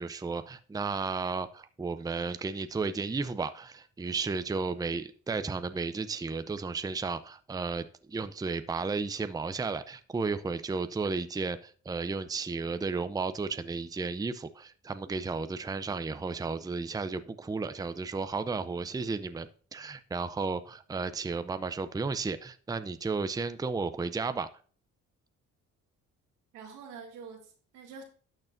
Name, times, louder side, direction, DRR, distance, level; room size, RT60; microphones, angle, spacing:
voice 1, 0.0-24.5, right 4 dB, 10° right, 0.5 m, -33 dB
voice 2, 26.5-28.0, right 5 dB, 90° right, 2.2 m, -46 dB
12.0 x 6.7 x 2.6 m
cardioid pair, 90°, 30 cm